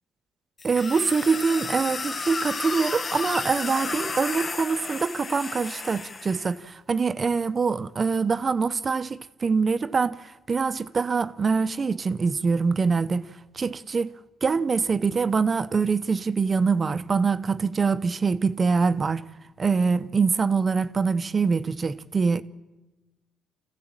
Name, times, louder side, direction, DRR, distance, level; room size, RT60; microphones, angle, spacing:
dying monster, 0.6-6.5, left 4 dB, 40° left, 1.1 m, -32 dB
voice 1, 0.6-14.1 14.4-19.3 19.6-22.4, right 5 dB, 35° right, 0.8 m, -24 dB
26.5 x 15.5 x 8.9 m
cardioid pair, 90°, 0 cm